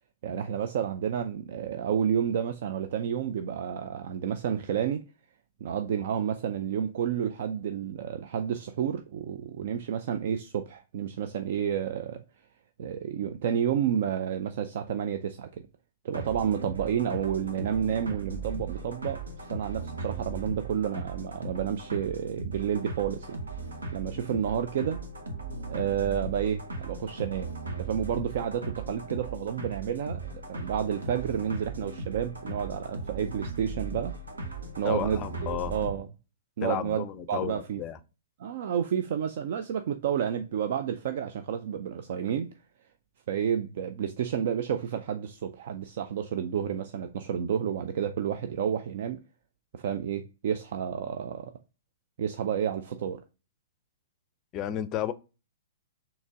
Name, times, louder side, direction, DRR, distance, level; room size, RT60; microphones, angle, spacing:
voice 1, 0.2-5.0 5.6-12.2 12.8-15.5 16.0-19.2 19.5-23.4 23.9-25.0 25.7-27.5 27.8-34.1 34.8-36.1 36.6-37.8 38.4-42.5 43.3-49.2 49.7-51.5 52.2-53.2, right 8 dB, 55° right, 0.4 m, -30 dB
sound 1, 16.1-36.0, right 3 dB, 80° right, 1.0 m, -38 dB
voice 2, 34.8-35.7 36.6-38.0 54.5-55.1, left 11 dB, 30° left, 0.4 m, -32 dB
3.9 x 2.9 x 3.4 m
figure-of-eight pair, 115°, 0 cm